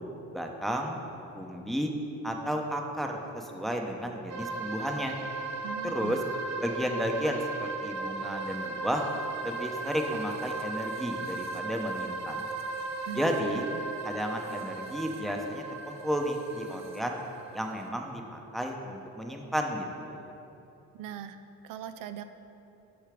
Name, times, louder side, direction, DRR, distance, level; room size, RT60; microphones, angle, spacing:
voice 1, 0.3-1.0 1.3-1.9 2.2-5.2 5.8-6.2 6.6-9.0 9.4-12.5 13.1-13.6 14.0-17.2 17.5-20.3, equal, ahead, 1 dB, 0.8 m, -33 dB
sound 1, 4.3-17.9, right 3 dB, 50° right, 0.8 m, -37 dB
voice 2, 5.6-6.1 13.1-13.7 20.9-21.4 21.6-22.2, right 10 dB, 65° right, 10 dB, 0.5 m, -40 dB
6.6 x 5.6 x 5.0 m, 2.9 s
supercardioid pair, 65°, 36 cm